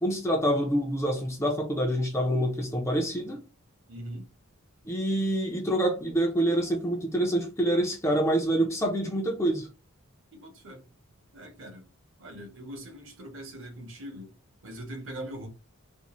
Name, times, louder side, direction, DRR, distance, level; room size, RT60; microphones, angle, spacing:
voice 1, 0.0-3.4 4.9-9.7, right 1 dB, 10° left, 0.4 m, -26 dB
voice 2, 3.9-4.3 10.3-10.8 11.3-11.9 12.2-14.3 14.6-15.5, right 1 dB, 60° right, 0.8 m, -41 dB
2.6 x 2.1 x 2.9 m
head